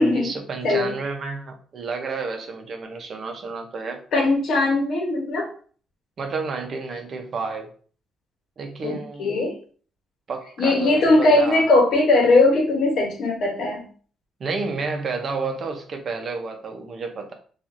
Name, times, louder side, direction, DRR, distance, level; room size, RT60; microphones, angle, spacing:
voice 1, 0.0-4.0 6.2-7.7 8.6-9.4 10.3-11.7 14.4-17.3, right 4 dB, 50° right, 4 dB, 0.6 m, -31 dB
voice 2, 4.1-5.5 8.8-9.5 10.6-13.8, left 2 dB, 65° left, 1 dB, 0.9 m, -19 dB
2.9 x 2.4 x 2.5 m, 0.43 s
cardioid pair, 90°, 0 cm